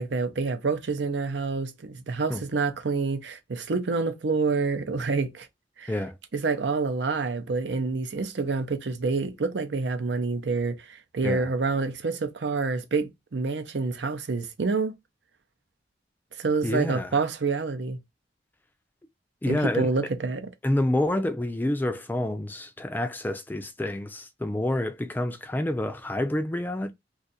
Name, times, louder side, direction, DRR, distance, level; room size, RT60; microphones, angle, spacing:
voice 1, 0.0-5.5 5.8-5.9 6.3-14.9 16.4-18.0 19.5-20.4, right 4 dB, 80° right, 0.6 m, -27 dB
voice 2, 16.6-17.2 19.4-19.9 20.6-26.9, left 1 dB, 10° left, 0.3 m, -28 dB
2.6 x 2.4 x 4.0 m
head